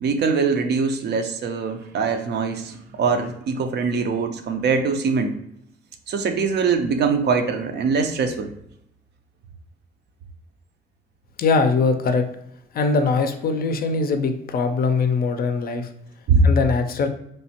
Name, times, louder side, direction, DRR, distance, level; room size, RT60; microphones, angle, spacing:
voice 1, 0.0-5.3 6.1-8.5 16.3-16.4, right 5 dB, 60° right, 6 dB, 0.5 m, -22 dB
voice 2, 11.4-12.2 12.7-15.9 16.4-17.1, left 4 dB, 50° left, 7 dB, 0.4 m, -21 dB
3.1 x 2.1 x 2.8 m, 0.76 s
cardioid pair, 90°, 20 cm